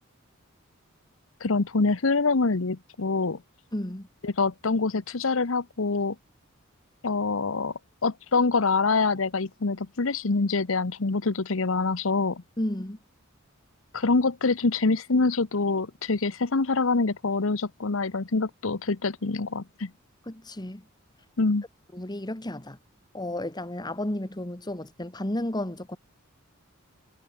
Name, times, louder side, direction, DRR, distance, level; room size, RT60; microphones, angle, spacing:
voice 1, 1.4-3.4 4.2-6.1 7.0-7.7 8.0-12.4 13.9-19.9 21.4-21.6, left 3 dB, 70° left, 1.0 m, -25 dB
voice 2, 3.7-4.1 12.6-13.0 20.3-20.9 21.9-22.8 23.1-26.0, left 1 dB, 20° left, 1.8 m, -32 dB
head